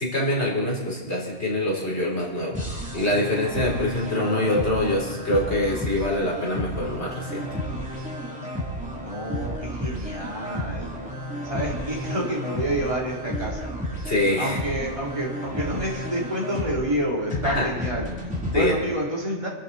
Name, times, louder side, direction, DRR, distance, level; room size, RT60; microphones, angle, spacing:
voice 1, 0.0-2.6 2.9-7.5 14.0-14.6 17.4-17.7 18.5-18.7, left 1 dB, 80° left, -3 dB, 4.4 m, -24 dB
sound 1, 2.5-18.6, equal, 5° right, 3.4 m, -32 dB
voice 2, 9.0-10.9 11.4-13.7 14.4-19.5, equal, 30° right, -4 dB, 3.7 m, -28 dB
26.0 x 12.0 x 4.3 m, 1.3 s
omnidirectional pair, 1.1 m